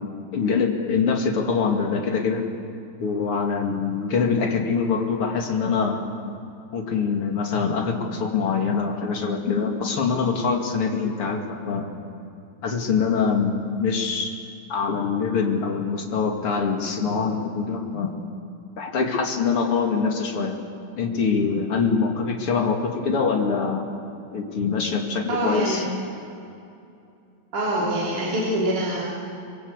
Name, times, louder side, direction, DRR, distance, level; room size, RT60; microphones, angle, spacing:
voice 1, 0.0-2.4 3.0-6.0 6.7-11.9 12.6-14.3 14.7-18.1 18.8-20.6 21.0-23.8 24.3-25.8, left 5 dB, 40° left, 2 dB, 2.4 m, -24 dB
voice 2, 25.3-25.9 27.5-29.1, right 1 dB, 45° right, -6 dB, 4.6 m, -24 dB
26.0 x 22.5 x 8.2 m, 2.6 s
omnidirectional pair, 5.3 m